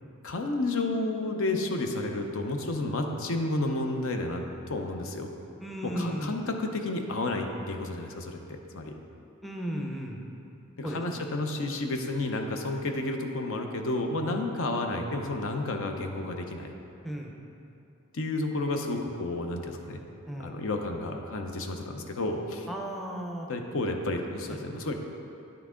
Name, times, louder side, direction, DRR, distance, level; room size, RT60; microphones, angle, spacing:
voice 1, 0.2-4.4 4.7-5.3 5.8-9.0 10.8-16.7 18.1-20.0 20.4-22.7 23.5-24.9, left 2 dB, 65° left, 4 dB, 0.7 m, -31 dB
voice 2, 5.6-6.4 9.4-10.2 10.8-11.4 14.2-14.5 17.0-17.3 20.3-20.6 22.7-23.5 24.5-24.6, equal, ahead, 0 dB, 0.6 m, -35 dB
10.0 x 5.9 x 3.7 m, 2.8 s
head